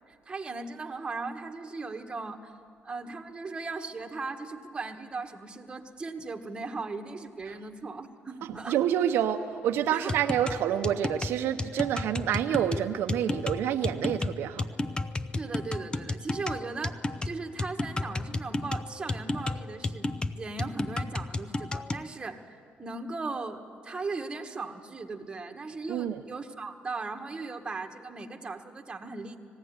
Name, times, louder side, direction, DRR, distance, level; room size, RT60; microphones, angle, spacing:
voice 1, 0.3-2.5 2.8-8.8 9.9-10.2 15.3-17.0 17.2-20.1 20.3-22.4 22.8-29.4, right 3 dB, 25° right, 4 dB, 1.5 m, -38 dB
voice 2, 8.4-14.7 25.9-26.2, right 10 dB, 80° right, 7 dB, 0.7 m, -28 dB
sound 1, 10.1-22.1, left 2 dB, 25° left, 0.6 m, -32 dB
20.0 x 15.5 x 9.5 m, 2.2 s
cardioid pair, 100°, 4 cm